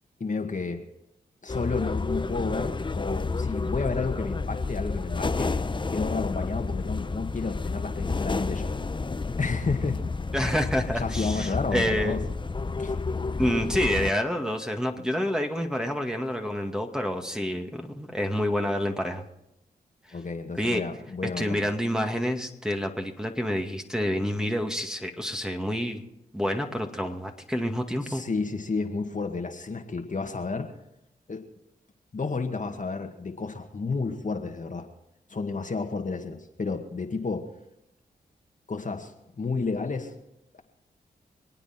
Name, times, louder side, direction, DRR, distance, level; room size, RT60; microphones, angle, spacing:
voice 1, 0.2-0.8 1.4-5.5 5.9-8.7 9.4-10.1 11.0-12.2 12.8-13.0 20.1-21.6 28.0-30.7 31.3-31.4 32.1-34.9 35.3-37.5 38.7-40.1, left 4 dB, 45° left, 4 dB, 2.0 m, -31 dB
sound 1, 1.5-14.1, left 3 dB, 25° left, 0.8 m, -30 dB
voice 2, 10.3-12.3 13.4-19.2 20.6-20.8 21.4-26.0 26.3-28.2, equal, 5° right, 3 dB, 2.2 m, -28 dB
27.0 x 9.0 x 4.4 m, 0.86 s
supercardioid pair, 45°, 18 cm